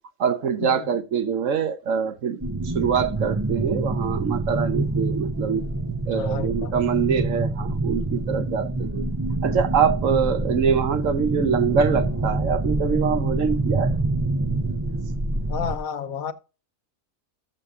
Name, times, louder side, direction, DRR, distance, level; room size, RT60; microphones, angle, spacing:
voice 1, 0.2-5.7 6.1-9.1 9.4-14.0, right 6 dB, 65° right, 1.2 m, -24 dB
sound 1, 2.4-15.8, right 2 dB, 20° right, 0.5 m, -26 dB
voice 2, 6.1-6.8 15.5-16.3, left 7 dB, 70° left, 1.3 m, -31 dB
14.0 x 6.8 x 3.7 m
omnidirectional pair, 1.5 m